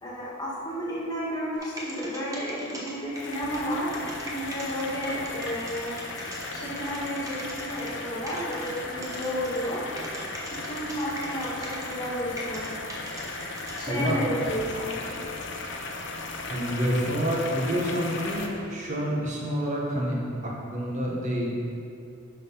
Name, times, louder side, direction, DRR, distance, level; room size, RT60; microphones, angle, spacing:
voice 1, 0.0-6.0 6.5-9.8 10.7-12.7 13.8-15.3, equal, 20° left, -7 dB, 1.9 m, -32 dB
sound 1, 1.5-6.5 6.8-8.0 8.3-12.1 12.4-13.8, equal, 15° right, 1.1 m, -40 dB
sound 2, 3.1-18.5, left 3 dB, 60° left, 0.8 m, -36 dB
voice 2, 13.9-14.2 16.5-21.5, equal, 35° right, -3 dB, 1.4 m, -28 dB
10.0 x 5.8 x 4.0 m, 2.5 s
head